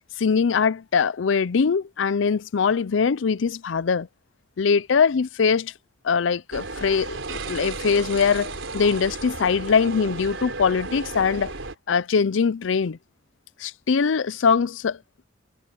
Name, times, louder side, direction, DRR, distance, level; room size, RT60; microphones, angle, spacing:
voice 1, 0.2-4.1 4.6-5.7 6.0-11.5 11.9-13.0 13.6-15.0, left 5 dB, 75° left, 0.5 m, -22 dB
sound 1, 6.5-11.7, right 3 dB, 85° right, 3.8 m, -34 dB
head